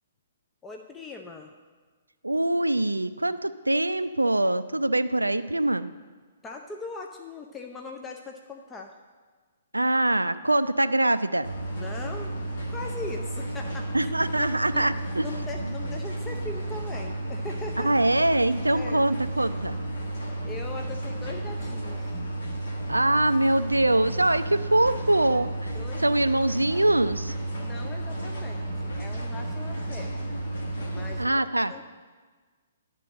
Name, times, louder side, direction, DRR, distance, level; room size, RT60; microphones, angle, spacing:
voice 1, 0.6-1.5 6.4-8.9 11.7-12.4 12.7-17.9 18.7-19.1 20.4-22.2 25.6-26.0 27.4-30.4 30.8-31.4 31.7-31.8, left 3 dB, 15° left, 3 dB, 0.5 m, -40 dB
voice 2, 2.2-5.9 9.7-11.5 13.9-15.3 17.8-19.8 22.9-25.7 26.0-27.3 31.2-31.7, right 1 dB, 80° right, 13 dB, 0.3 m, -23 dB
sound 1, 11.4-31.3, right 1 dB, 50° left, 1.6 m, -32 dB
10.5 x 3.8 x 7.5 m, 1.4 s
figure-of-eight pair, 120°, 0 cm